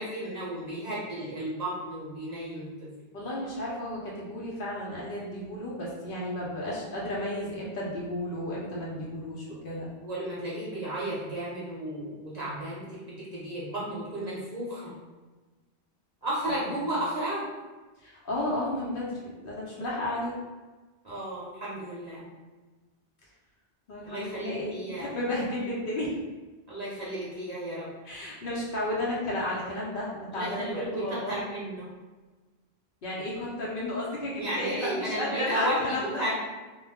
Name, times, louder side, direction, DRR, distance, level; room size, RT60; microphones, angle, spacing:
voice 1, 0.0-2.9 10.0-14.9 16.2-17.5 21.0-22.3 24.0-25.1 26.7-27.9 30.3-31.9 34.3-36.3, right 1 dB, 45° right, -8 dB, 0.7 m, -33 dB
voice 2, 3.1-9.9 18.0-20.3 23.9-26.1 28.0-31.4 33.0-36.2, left 1 dB, 60° left, -5 dB, 0.7 m, -33 dB
2.2 x 2.0 x 3.4 m, 1.3 s
omnidirectional pair, 1.1 m